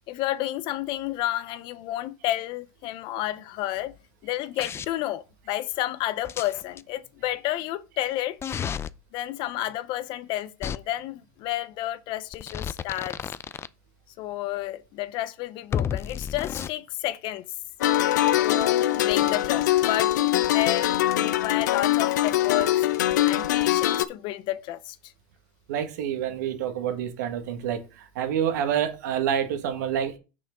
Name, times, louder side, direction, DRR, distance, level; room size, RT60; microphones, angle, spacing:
voice 1, 0.1-3.9 4.2-8.4 9.1-13.2 14.2-17.4 18.4-18.6 18.9-22.7 23.3-25.0, left 14 dB, 60° left, 0.8 m, -31 dB
sound 1, 4.6-4.9 6.2-6.8 8.4-8.9 10.6-10.8 12.3-13.7 15.7-16.7, left 8 dB, 30° left, 0.5 m, -31 dB
sound 2, 17.8-24.1, left 13 dB, 90° left, 0.6 m, -22 dB
voice 2, 25.7-30.2, right 9 dB, 85° right, 1.7 m, -28 dB
6.4 x 5.8 x 5.2 m
supercardioid pair, 105°, 9 cm